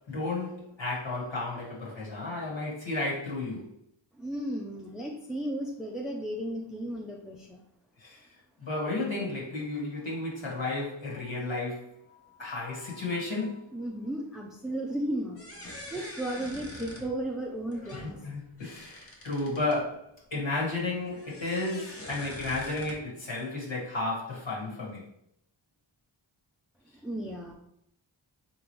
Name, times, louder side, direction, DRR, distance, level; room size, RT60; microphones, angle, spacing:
voice 1, 0.1-3.7 8.0-8.2 8.6-11.9 12.4-13.6 17.9-25.0, left 2 dB, 65° left, -5 dB, 1.5 m, -33 dB
voice 2, 4.2-7.6 13.7-18.3 27.0-27.5, right 1 dB, ahead, -1 dB, 0.4 m, -35 dB
sound 1, 15.4-19.8 20.7-23.0, left 1 dB, 30° left, 0.8 m, -45 dB
3.6 x 3.0 x 3.0 m, 0.74 s
cardioid pair, 50°, 49 cm